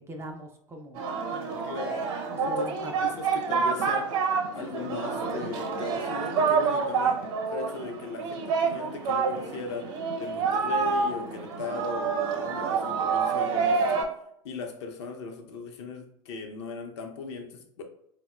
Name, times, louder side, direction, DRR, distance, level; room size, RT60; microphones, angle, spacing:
voice 1, 0.0-1.6 2.3-3.1, right 1 dB, 15° right, 3 dB, 0.3 m, -42 dB
Singing, 0.9-14.0, right 5 dB, 50° right, 0.7 m, -28 dB
voice 2, 1.6-2.0 2.4-2.7 3.0-4.1 4.5-7.2 7.5-14.1 14.4-17.8, left 4 dB, 55° left, 4 dB, 0.6 m, -38 dB
3.9 x 2.1 x 2.3 m, 0.73 s
figure-of-eight pair, 85°, 17 cm